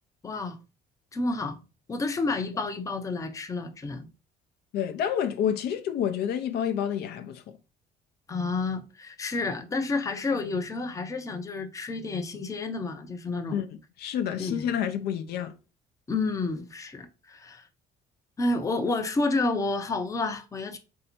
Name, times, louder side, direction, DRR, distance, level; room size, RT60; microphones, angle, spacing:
voice 1, 0.2-0.6 1.1-1.6 1.9-4.1 8.3-13.6 14.4-14.7 16.1-17.6 18.4-20.8, left 3 dB, 20° left, 0.6 m, -30 dB
voice 2, 4.7-7.6 13.5-13.7 14.0-15.5, left 9 dB, 70° left, 0.6 m, -29 dB
3.3 x 2.7 x 4.3 m
cardioid pair, 110°, 17 cm